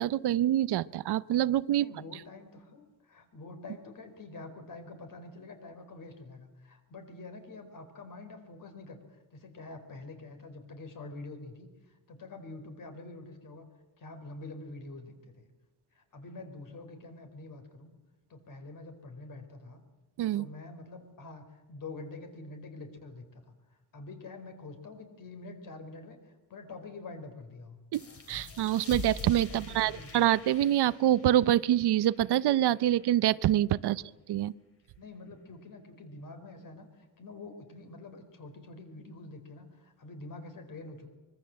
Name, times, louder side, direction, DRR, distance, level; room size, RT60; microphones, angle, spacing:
voice 1, 0.0-1.9 20.2-20.5 27.9-28.0 28.3-34.0 34.3-34.5, right 12 dB, 75° right, 17 dB, 0.7 m, -26 dB
voice 2, 1.8-9.0 9.3-11.7 12.1-13.7 14.0-15.4 15.9-17.9 18.3-19.8 20.3-23.4 23.9-27.8 29.5-30.3 33.9-34.1 35.0-41.1, left 2 dB, 55° left, 6 dB, 4.5 m, -46 dB
sound 1, 27.9-33.2, left 4 dB, 35° left, 2.7 m, -45 dB
24.5 x 23.0 x 7.6 m, 1.1 s
wide cardioid pair, 165°, 39 cm